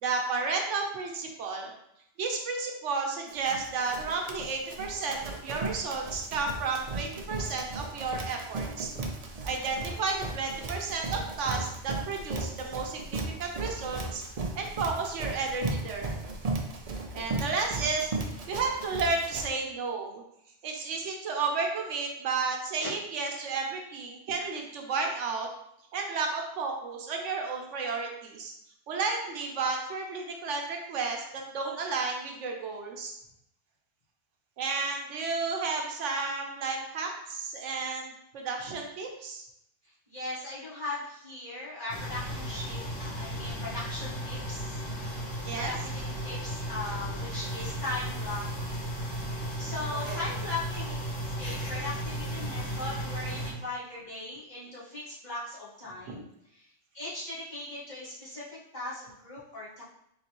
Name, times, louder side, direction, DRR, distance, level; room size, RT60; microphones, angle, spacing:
voice 1, 0.0-1.7 2.2-8.9 9.4-14.2 14.6-16.1 17.1-18.1 18.5-20.2 20.6-25.5 25.9-28.5 28.9-33.1 34.6-39.4 45.5-45.7 49.9-50.2 56.0-56.2, right 4 dB, 85° right, 2 dB, 1.1 m, -32 dB
Run, 3.3-19.5, right 3 dB, 50° right, 0.5 m, -36 dB
voice 2, 40.1-44.8 45.5-48.8 49.6-50.9 51.4-56.2 56.5-56.7 56.9-59.8, left 2 dB, 40° left, -10 dB, 1.7 m, -38 dB
sound 1, 41.9-53.5, equal, 85° left, 1.4 m, -35 dB
3.9 x 3.6 x 3.0 m, 0.77 s
omnidirectional pair, 1.2 m